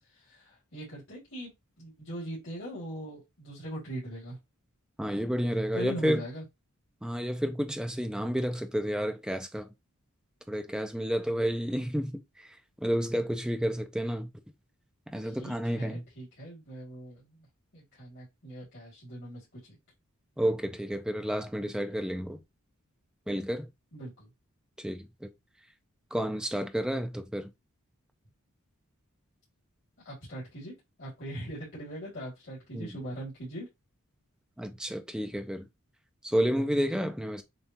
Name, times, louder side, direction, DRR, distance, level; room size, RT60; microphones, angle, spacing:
voice 1, 0.1-1.5 1.8-4.4 5.7-6.4 15.2-17.5 17.7-19.8 23.9-24.3 30.0-30.7 31.0-33.7, right 1 dB, 55° left, 2.4 m, -41 dB
voice 2, 5.0-6.2 7.0-9.7 10.5-12.1 12.4-12.6 12.8-14.3 15.1-16.0 20.4-22.4 23.3-23.7 24.8-25.3 26.1-27.5 32.7-32.9 34.6-35.7 36.2-37.4, equal, 5° right, 0.4 m, -30 dB
6.9 x 2.3 x 2.9 m
head